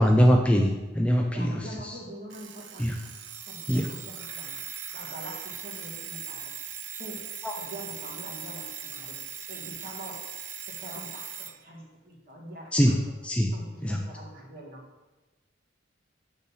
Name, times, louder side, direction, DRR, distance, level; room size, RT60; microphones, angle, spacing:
voice 1, 0.0-2.0 2.8-3.0 3.7-3.9 7.4-7.6 12.7-13.0 13.2-13.5 13.8-14.0, equal, 5° left, 1 dB, 0.3 m, -22 dB
voice 2, 1.3-2.9 3.5-4.6 4.9-6.4 7.0-7.2 7.6-9.2 9.5-10.2 10.7-13.0 13.5-14.8, right 1 dB, 45° right, -2 dB, 1.5 m, -44 dB
Alarm, 2.3-11.6, right 7 dB, 65° right, 0.6 m, -39 dB
6.9 x 4.0 x 5.5 m, 1.2 s
head